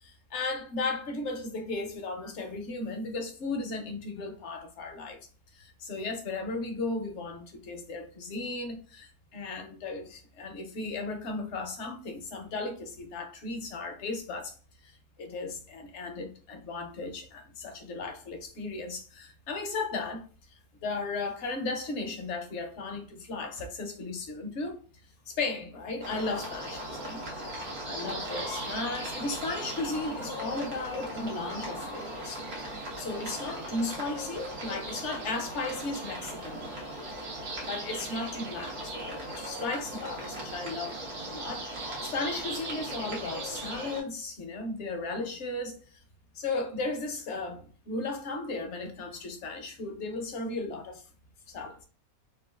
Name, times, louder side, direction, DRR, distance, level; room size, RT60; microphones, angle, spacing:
voice 1, 0.0-5.2 5.5-14.5 14.8-20.2 20.8-24.8 25.3-27.2 27.5-32.4 32.8-36.8 37.6-41.0 41.3-41.7 42.0-46.0 46.3-51.0 51.5-51.8, left 3 dB, 60° left, 0.9 m, -35 dB
sound 1, 26.0-44.0, right 1 dB, 85° right, 1.6 m, -38 dB
3.7 x 2.3 x 2.3 m
omnidirectional pair, 1.5 m